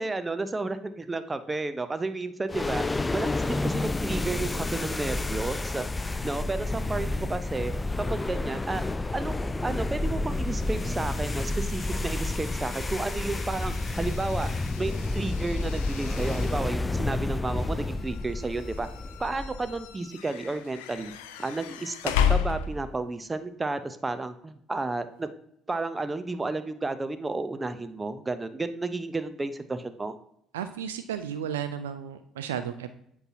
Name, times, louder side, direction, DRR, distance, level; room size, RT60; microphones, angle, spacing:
voice 1, 0.0-2.8 3.1-5.9 6.2-7.7 8.1-8.8 9.1-14.5 14.8-18.9 19.2-21.1 21.4-25.3 25.7-30.2, right 3 dB, 20° right, 11 dB, 0.7 m, -32 dB
sound 1, 2.5-19.9, left 2 dB, 20° left, 0.3 m, -30 dB
sound 2, 10.3-23.1, left 8 dB, 80° left, 0.5 m, -35 dB
voice 2, 30.5-32.9, right 9 dB, 85° right, 9 dB, 0.4 m, -33 dB
8.0 x 5.7 x 2.8 m, 0.72 s
hypercardioid pair, 60°, 0 cm